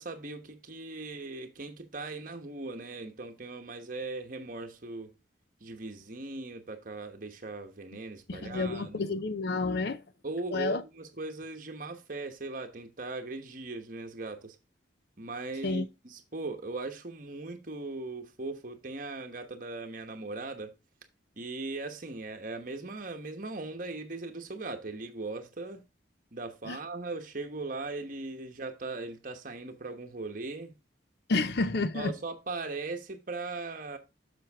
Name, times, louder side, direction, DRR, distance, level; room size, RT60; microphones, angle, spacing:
voice 1, 0.0-5.1 5.6-9.2 10.2-14.6 15.2-20.7 21.4-25.8 26.3-30.7 31.9-34.0, right 3 dB, 45° right, 1.1 m, -39 dB
voice 2, 8.3-10.0 10.5-10.8 15.6-15.8 26.7-26.8 31.3-32.1, left 3 dB, 55° left, 0.6 m, -30 dB
7.8 x 6.2 x 3.5 m
head